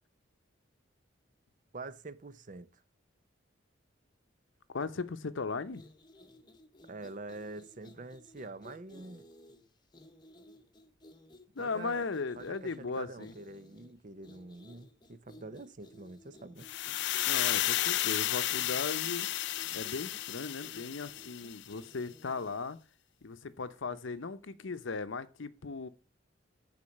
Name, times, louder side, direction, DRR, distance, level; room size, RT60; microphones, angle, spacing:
voice 1, 1.7-2.8 6.9-9.3 11.6-12.1 12.4-16.7 23.9-24.0, right 2 dB, 40° right, 0.6 m, -46 dB
voice 2, 4.7-5.8 11.5-13.3 17.3-19.3 19.7-22.8 23.2-25.9, left 4 dB, 85° left, 0.7 m, -37 dB
sound 1, 5.7-22.7, left 1 dB, 20° left, 1.0 m, -57 dB
sound 2, 16.6-21.7, left 14 dB, 65° left, 0.3 m, -32 dB
8.6 x 4.4 x 6.4 m
head